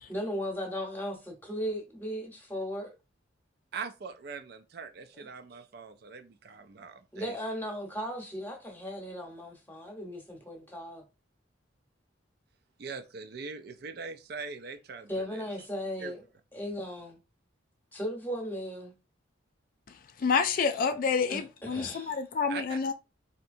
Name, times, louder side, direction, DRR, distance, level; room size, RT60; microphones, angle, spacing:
voice 1, 0.1-2.9 5.1-5.3 7.1-11.0 15.1-16.2 16.5-17.2 17.9-18.9 21.3-22.2, equal, 10° left, 0.9 m, -36 dB
voice 2, 3.7-7.4 12.8-15.5 16.0-16.1 22.5-22.8, right 5 dB, 55° right, 0.4 m, -42 dB
voice 3, 20.2-22.9, left 5 dB, 45° left, 0.3 m, -28 dB
4.3 x 2.8 x 2.6 m
head